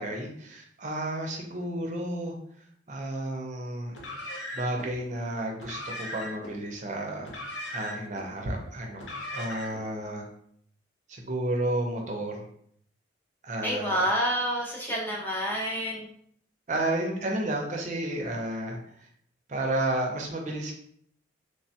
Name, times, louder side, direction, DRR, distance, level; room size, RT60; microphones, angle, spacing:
voice 1, 0.0-2.3 2.9-3.9 4.5-10.3 11.1-12.4 13.4-14.0 16.7-18.8 19.5-20.7, right 1 dB, 40° right, 1 dB, 0.5 m, -32 dB
Car, 3.9-4.9 5.5-6.5 7.2-8.2 8.9-9.9, left 1 dB, 85° left, 0.7 m, -38 dB
voice 2, 13.6-16.1, equal, 10° left, -2 dB, 0.4 m, -28 dB
3.2 x 2.1 x 2.7 m, 0.64 s
head